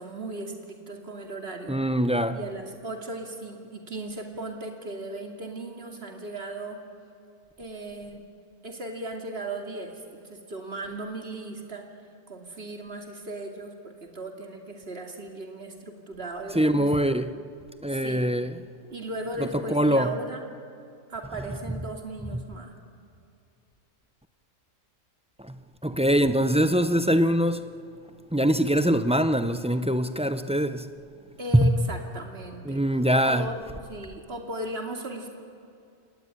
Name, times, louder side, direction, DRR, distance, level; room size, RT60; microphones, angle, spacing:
voice 1, 0.0-1.8 2.3-6.8 7.6-8.3 8.6-11.8 12.3-17.2 17.9-18.3 18.9-20.4 21.1-22.7 31.4-32.8 33.2-33.6 33.9-35.3, right 2 dB, 50° right, 2.8 m, -37 dB
voice 2, 1.7-2.4 16.5-17.3 17.8-18.6 19.5-20.1 25.4-27.7 28.3-30.9 31.5-31.7 32.7-33.5, equal, 10° right, 0.4 m, -23 dB
27.5 x 19.5 x 9.8 m
omnidirectional pair, 1.3 m